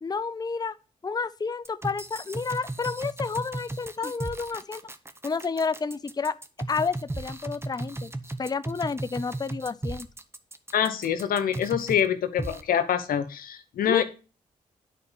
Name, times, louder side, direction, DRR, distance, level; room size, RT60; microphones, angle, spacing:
voice 1, 0.0-0.8 1.0-4.8 5.2-6.4 6.7-8.1 8.4-10.1 13.9-14.0, left 4 dB, 25° left, 0.5 m, -30 dB
sound 1, 1.6-12.1 12.4-12.6, right 2 dB, 15° right, 1.1 m, -35 dB
voice 2, 10.7-14.0, left 9 dB, 85° left, 1.1 m, -25 dB
9.7 x 4.4 x 6.9 m
cardioid pair, 55°, 15 cm